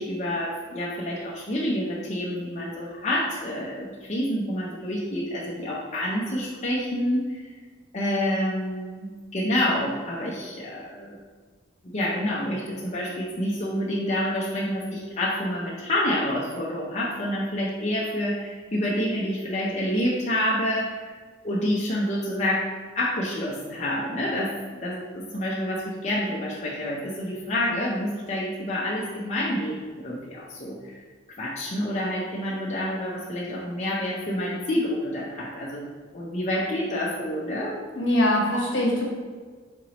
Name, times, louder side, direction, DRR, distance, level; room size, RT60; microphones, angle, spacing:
voice 1, 0.0-7.4 7.9-11.2 11.8-21.1 21.4-22.6 23.0-24.5 24.8-31.0 31.4-37.8, left 1 dB, 35° left, -6 dB, 0.6 m, -28 dB
voice 2, 37.9-39.1, left 1 dB, 65° left, -2 dB, 1.1 m, -22 dB
4.6 x 3.9 x 2.9 m, 1.5 s
head